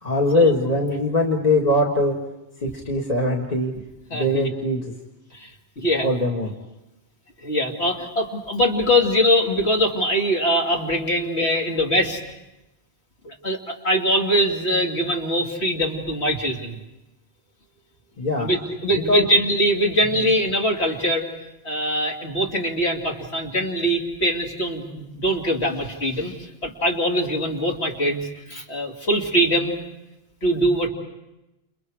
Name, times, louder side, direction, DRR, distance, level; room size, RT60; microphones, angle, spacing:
voice 1, 0.0-2.2 2.6-3.7 4.1-4.9 6.0-6.5 18.2-18.5 18.9-19.3 20.2-20.3, left 1 dB, 35° left, -1 dB, 2.0 m, -21 dB
voice 2, 4.1-4.5 5.3-5.5 5.8-6.1 7.4-12.2 13.2-16.8 18.4-21.3 21.6-29.8 30.4-30.9, equal, 70° left, 0 dB, 3.0 m, -22 dB
29.5 x 29.5 x 4.9 m, 0.96 s
omnidirectional pair, 1.1 m